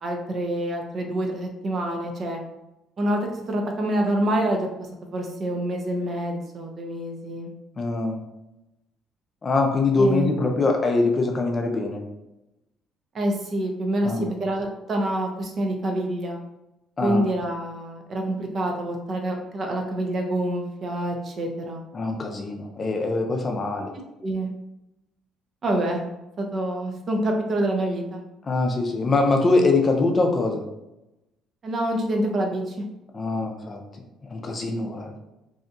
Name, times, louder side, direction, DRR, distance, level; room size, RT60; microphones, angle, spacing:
voice 1, 0.0-2.4 3.0-4.7 5.1-7.5 10.0-10.3 13.1-16.4 17.0-21.8 24.2-24.5 25.6-26.0 26.4-28.2 31.6-32.8, right 1 dB, 40° right, 2 dB, 0.5 m, -26 dB
voice 2, 7.8-8.2 9.4-12.0 14.0-14.3 17.0-17.3 21.9-23.9 28.4-30.6 33.1-33.8 34.3-35.2, left 3 dB, 30° left, 2 dB, 0.5 m, -23 dB
2.7 x 2.2 x 2.6 m, 0.92 s
cardioid pair, 110°, 0 cm